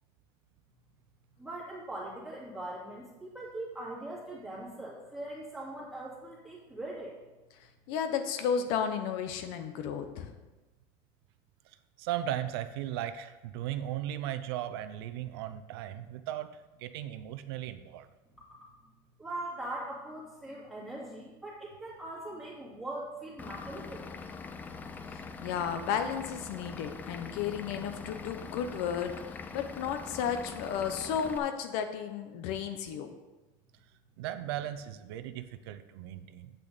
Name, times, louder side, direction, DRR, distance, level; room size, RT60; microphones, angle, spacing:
voice 1, 1.4-7.2 19.2-24.1, right 1 dB, ahead, -7 dB, 2.6 m, -41 dB
voice 2, 7.9-10.3 25.1-33.1, left 7 dB, 55° left, 7 dB, 0.8 m, -33 dB
voice 3, 11.7-16.5 16.8-18.1 34.2-36.5, right 12 dB, 90° right, 11 dB, 0.6 m, -37 dB
Vehicle / Engine, 23.4-31.4, left 4 dB, 15° left, 0.4 m, -43 dB
9.0 x 8.3 x 4.1 m, 1.1 s
cardioid pair, 175°, 12 cm